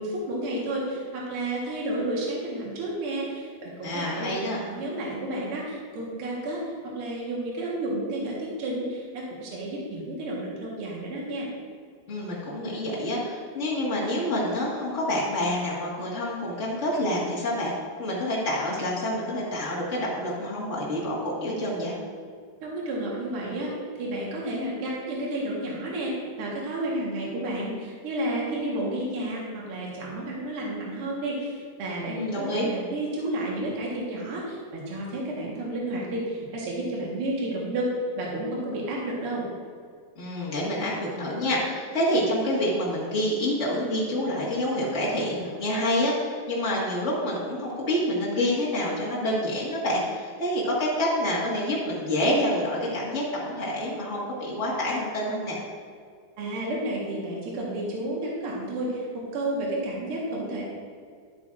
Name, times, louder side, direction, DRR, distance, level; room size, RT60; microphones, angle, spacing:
voice 1, 0.0-11.5 22.6-37.9 38.2-39.4 56.4-59.1 59.3-60.6, right 1 dB, 60° right, -4 dB, 1.5 m, -31 dB
voice 2, 3.8-4.6 12.1-17.7 18.0-22.0 32.1-32.7 40.1-55.6, left 1 dB, 85° left, -7 dB, 0.6 m, -27 dB
12.0 x 8.4 x 2.5 m, 2.2 s
omnidirectional pair, 4.4 m